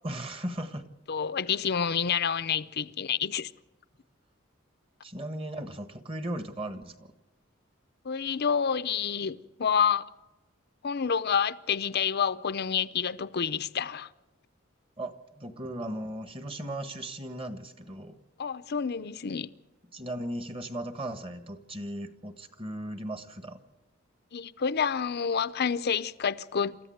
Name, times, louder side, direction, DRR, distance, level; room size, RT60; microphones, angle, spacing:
voice 1, 0.0-0.8 5.0-7.1 15.0-18.1 19.9-23.6, right 1 dB, 25° right, 1.5 m, -37 dB
voice 2, 1.1-3.5 8.0-10.0 10.8-14.1 18.4-19.5 24.3-26.8, left 7 dB, 55° left, 0.6 m, -28 dB
27.5 x 14.5 x 7.9 m
head